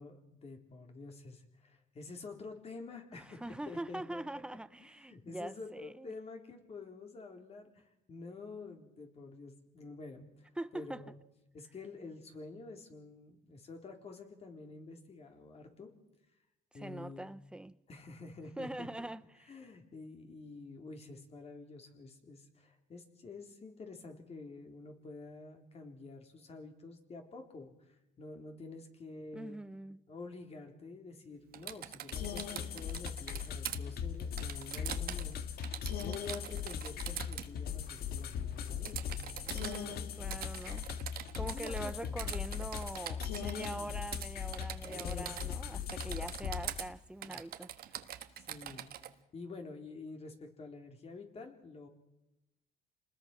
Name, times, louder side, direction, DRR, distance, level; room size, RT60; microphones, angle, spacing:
voice 1, 0.0-4.4 4.8-11.1 11.5-15.9 16.7-17.3 17.9-18.9 19.5-29.6 30.1-35.4 36.0-40.1 41.4-42.2 43.4-43.9 44.8-45.5 47.2-47.4 48.4-51.9, left 3 dB, 40° left, 4.0 m, -49 dB
voice 2, 3.1-6.1 10.6-11.0 16.7-17.8 18.6-19.2 29.3-30.0 39.5-40.9 41.4-47.7, right 1 dB, 5° right, 0.8 m, -43 dB
Typing, 31.5-33.8 34.4-35.3 35.6-37.5 38.8-39.8 40.3-41.9 42.2-43.8 44.1-44.3 44.5-45.6 45.9-46.9 47.2-49.1, right 11 dB, 65° right, 1.5 m, -43 dB
sound 1, 32.1-46.9, left 8 dB, 65° left, 1.8 m, -39 dB
28.5 x 20.5 x 6.1 m
cardioid pair, 110°, 17 cm